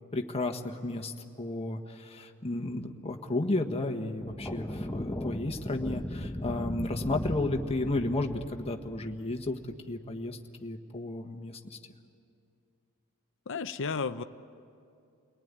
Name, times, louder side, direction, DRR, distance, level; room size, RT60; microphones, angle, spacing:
voice 1, 0.1-9.6 9.9-11.8, left 2 dB, 30° left, 3 dB, 1.5 m, -33 dB
sound 1, 4.2-9.8, left 1 dB, 10° left, 0.9 m, -37 dB
voice 2, 13.5-14.2, left 5 dB, 60° left, 10 dB, 0.7 m, -32 dB
30.0 x 20.0 x 9.7 m, 2.4 s
head